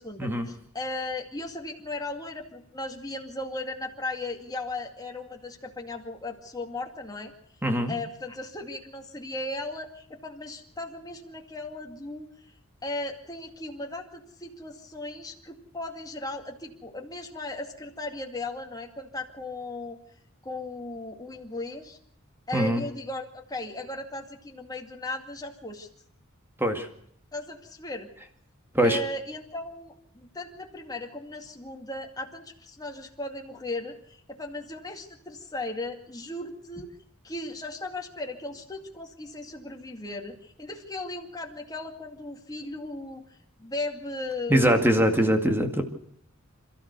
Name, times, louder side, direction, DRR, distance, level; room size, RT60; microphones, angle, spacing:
voice 1, 0.0-7.3 7.9-12.3 12.8-20.0 20.4-22.0 22.5-25.9 27.3-28.1 28.8-36.9 37.2-43.2 43.6-45.3, left 2 dB, 20° left, 2 dB, 2.3 m, -36 dB
voice 2, 7.6-7.9 22.5-22.8 26.6-26.9 28.7-29.0 44.5-45.8, equal, 10° right, 5 dB, 2.1 m, -22 dB
28.0 x 13.5 x 6.8 m, 0.67 s
head